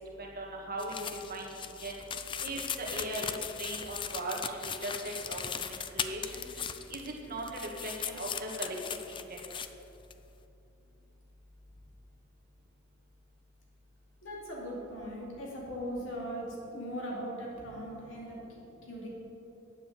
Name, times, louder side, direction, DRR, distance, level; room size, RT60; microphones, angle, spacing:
voice 1, 0.2-2.0 2.4-5.6 5.9-6.4 6.9-8.8 9.1-9.4, right 1 dB, 50° right, -1 dB, 1.7 m, -39 dB
sound 1, 0.8-7.2 7.4-9.7 10.1-10.2, left 7 dB, 25° left, 0.4 m, -38 dB
voice 2, 14.2-16.5 16.7-18.4 18.8-19.1, equal, 70° left, -3 dB, 2.7 m, -39 dB
9.2 x 7.4 x 6.9 m, 2.8 s
head